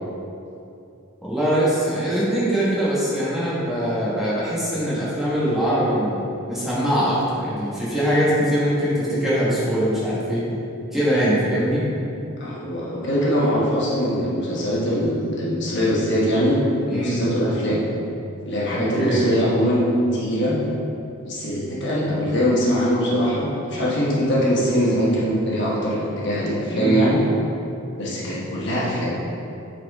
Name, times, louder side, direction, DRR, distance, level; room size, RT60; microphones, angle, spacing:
voice 1, 1.2-6.2 6.5-10.4 10.9-11.8 16.9-17.2 18.7-19.2 26.7-27.1, equal, ahead, -10 dB, 1.4 m, -22 dB
voice 2, 12.4-16.6 16.9-17.9 18.4-19.9 20.1-20.6 21.2-27.2 28.0-29.2, equal, 50° left, -6 dB, 1.3 m, -22 dB
8.5 x 4.2 x 3.6 m, 2.8 s
head